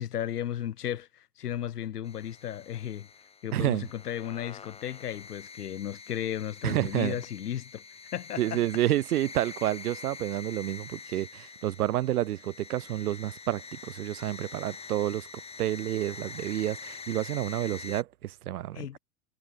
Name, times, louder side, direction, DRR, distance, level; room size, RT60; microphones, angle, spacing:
voice 1, 0.0-3.1 3.4-7.8 8.1-8.6 18.7-19.0, left 10 dB, 80° left, 5.4 m, -35 dB
sound 1, 2.0-18.0, left 5 dB, 15° left, 3.4 m, -45 dB
voice 2, 3.5-3.9 6.6-7.1 8.4-15.3 15.6-19.0, right 14 dB, 70° right, 1.7 m, -29 dB
hypercardioid pair, 130°, 46 cm